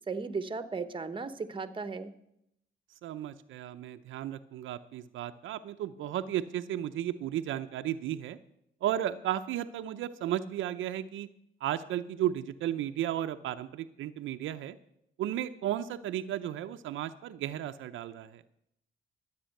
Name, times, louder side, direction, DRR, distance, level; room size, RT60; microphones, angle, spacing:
voice 1, 0.1-2.1, right 4 dB, 25° right, 11 dB, 1.0 m, -36 dB
voice 2, 3.0-8.4 8.8-11.3 11.6-14.8 15.2-18.5, right 11 dB, 80° right, 9 dB, 0.6 m, -34 dB
13.0 x 8.4 x 6.5 m, 0.77 s
cardioid pair, 90°, 20 cm